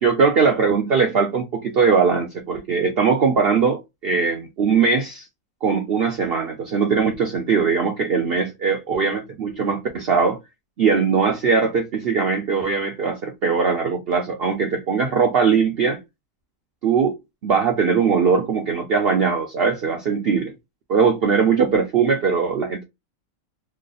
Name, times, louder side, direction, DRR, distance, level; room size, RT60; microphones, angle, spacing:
voice 1, 0.0-5.3 5.6-10.4 10.8-16.0 16.8-17.1 17.4-20.5 20.9-22.8, right 5 dB, 55° right, 0.7 m, -20 dB
3.2 x 2.1 x 3.9 m
omnidirectional pair, 1.6 m